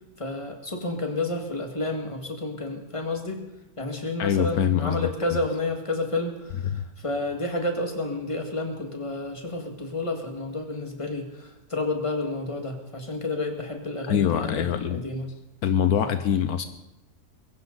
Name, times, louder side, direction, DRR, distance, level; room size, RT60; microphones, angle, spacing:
voice 1, 0.2-3.4 3.8-15.3 16.0-16.2, left 2 dB, 20° left, 3 dB, 2.1 m, -30 dB
voice 2, 4.2-5.4 6.7-6.8 14.0-15.0 15.6-16.7, left 9 dB, 75° left, 10 dB, 1.2 m, -24 dB
22.0 x 15.5 x 4.0 m, 0.93 s
omnidirectional pair, 1.6 m